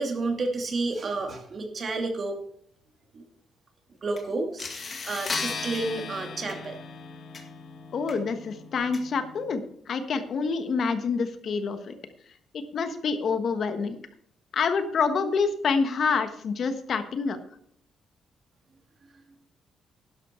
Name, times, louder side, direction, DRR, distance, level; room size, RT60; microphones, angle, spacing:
voice 1, 0.0-2.4 3.1-3.2 4.0-6.8, right 3 dB, 40° right, 4 dB, 2.4 m, -30 dB
sound 1, 4.2-4.3 4.6-9.5, left 4 dB, 35° left, 1.9 m, -37 dB
voice 2, 7.9-12.0 12.5-14.0 14.5-17.4, left 5 dB, 55° left, 9 dB, 1.2 m, -27 dB
11.5 x 11.5 x 4.4 m, 0.65 s
cardioid pair, 115°, 0 cm